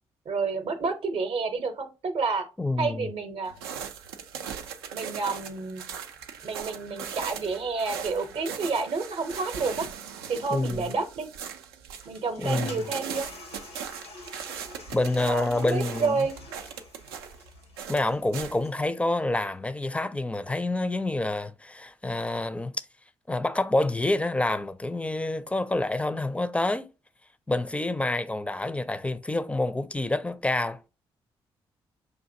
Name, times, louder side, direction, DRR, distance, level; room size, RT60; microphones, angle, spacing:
voice 1, 0.3-2.4 2.8-3.5 4.9-5.9 6.4-9.9 10.3-11.3 12.0-13.3 15.2-16.3, right 4 dB, 45° right, 0.7 m, -29 dB
voice 2, 2.6-3.1 10.5-10.9 12.4-12.9 14.9-16.3 17.9-22.7 23.3-26.9 27.5-30.8, left 2 dB, 10° left, 0.4 m, -27 dB
sound 1, 3.5-18.7, right 7 dB, 80° right, 0.4 m, -39 dB
Toilet flush, 12.0-18.9, left 1 dB, 85° left, 0.8 m, -46 dB
5.7 x 2.6 x 2.6 m
figure-of-eight pair, 40°, 13 cm